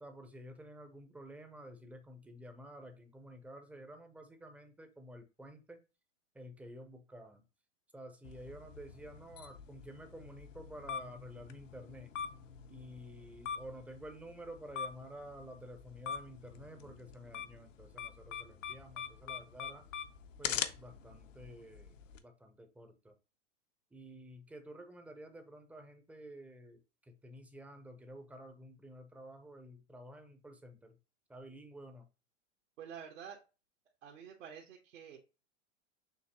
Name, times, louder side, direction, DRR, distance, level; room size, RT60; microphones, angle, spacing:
voice 1, 0.0-5.8 6.3-7.4 7.9-12.1 12.7-19.8 20.4-23.2 23.9-31.0 31.3-32.1, equal, 5° right, 7 dB, 0.4 m, -51 dB
sound 1, 8.2-22.2, left 8 dB, 85° left, 0.7 m, -44 dB
voice 2, 32.8-33.4 34.0-35.2, right 8 dB, 80° right, -1 dB, 1.0 m, -49 dB
6.6 x 2.6 x 2.8 m, 0.30 s
hypercardioid pair, 115°, 37 cm